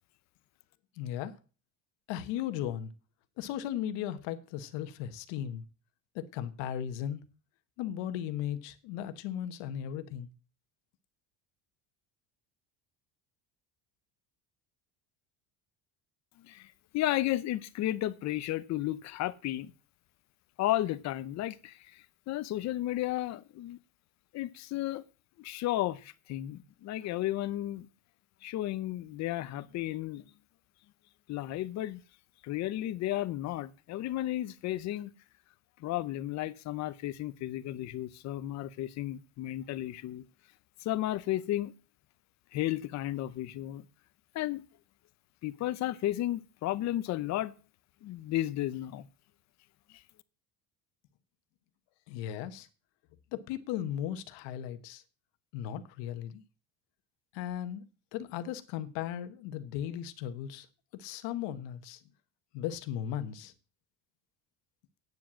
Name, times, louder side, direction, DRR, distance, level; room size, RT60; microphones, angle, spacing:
voice 1, 1.0-1.3 2.1-2.9 3.4-5.6 6.1-7.2 7.8-10.3 52.1-52.7 53.3-55.0 55.5-56.4 57.3-57.8 58.1-60.7 60.9-62.0 62.5-63.5, left 10 dB, 75° left, 1.3 m, -36 dB
voice 2, 16.4-19.7 20.6-23.8 24.3-25.0 25.4-27.9 28.4-30.2 31.3-32.0 32.4-35.1 35.8-40.2 40.8-41.7 42.5-43.8 44.3-44.6 45.4-47.5 48.0-49.1 49.9-50.0, left 14 dB, 40° left, 0.6 m, -33 dB
9.4 x 7.6 x 7.4 m
cardioid pair, 180°, 43 cm